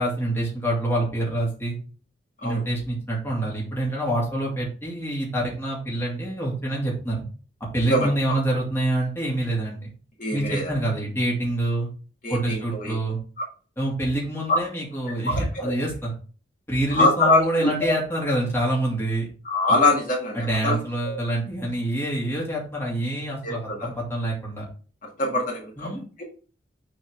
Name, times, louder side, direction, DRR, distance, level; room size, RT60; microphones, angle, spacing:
voice 1, 0.0-1.8 2.4-7.2 7.7-9.9 10.3-11.9 12.3-13.2 13.8-16.1 16.7-19.3 20.3-24.6 25.8-26.0, right 1 dB, 15° left, -4 dB, 2.2 m, -26 dB
voice 2, 7.9-8.4 10.2-10.7 12.2-13.0 15.3-15.7 16.9-17.9 19.4-20.8 21.1-21.2 23.4-23.9 25.2-26.2, left 2 dB, 50° left, -2 dB, 2.0 m, -24 dB
6.6 x 4.2 x 3.5 m, 0.38 s
head